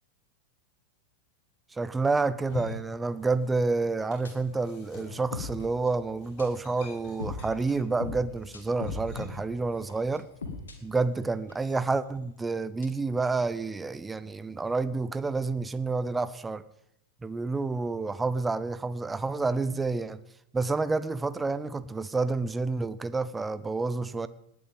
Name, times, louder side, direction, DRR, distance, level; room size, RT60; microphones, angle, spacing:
voice 1, 1.7-10.3 10.8-16.6 17.2-20.2 20.5-24.3, right 3 dB, 10° right, 0.6 m, -29 dB
sound 1, 2.3-3.7 3.9-9.5, left 5 dB, 40° left, 7.5 m, -43 dB
sound 2, 4.2-4.6 5.1-6.9 7.2-11.9 12.8-12.9, left 3 dB, 70° left, 2.3 m, -41 dB
19.0 x 9.6 x 5.3 m
figure-of-eight pair, 90°, 0 cm